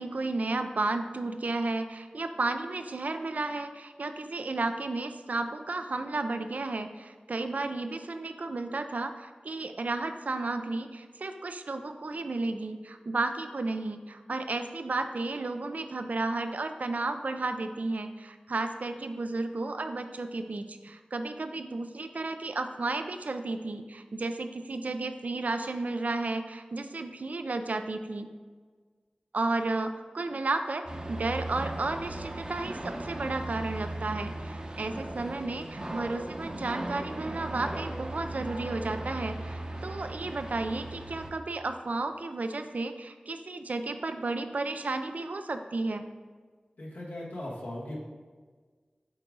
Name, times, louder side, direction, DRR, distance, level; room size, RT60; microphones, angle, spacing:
voice 1, 0.0-28.3 29.3-46.1, right 3 dB, 65° right, 8 dB, 0.4 m, -33 dB
sound 1, 30.8-41.3, right 1 dB, 35° right, 0.8 m, -37 dB
voice 2, 46.8-48.0, left 1 dB, 85° left, -4 dB, 1.5 m, -38 dB
8.7 x 3.7 x 3.8 m, 1.5 s
wide cardioid pair, 50°, 3 cm